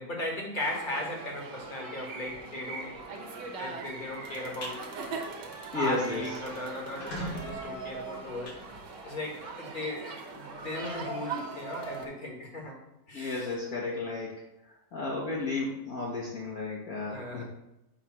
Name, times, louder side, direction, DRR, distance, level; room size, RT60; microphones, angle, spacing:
voice 1, 0.0-3.0 3.6-4.9 5.7-8.5 9.0-12.8 13.1-13.5 17.1-17.4, left 1 dB, 30° left, -1 dB, 1.5 m, -37 dB
sound 1, 0.6-12.1, right 4 dB, 70° right, 1.7 m, -40 dB
sound 2, 4.6-4.8 5.2-5.5 5.8-5.9 6.1-6.2 6.8-9.3, equal, 85° left, 2.0 m, -41 dB
voice 2, 5.7-6.2 13.1-14.3 14.9-17.4, left 3 dB, 55° left, -6 dB, 1.7 m, -33 dB
7.5 x 3.2 x 5.9 m, 0.87 s
omnidirectional pair, 1.9 m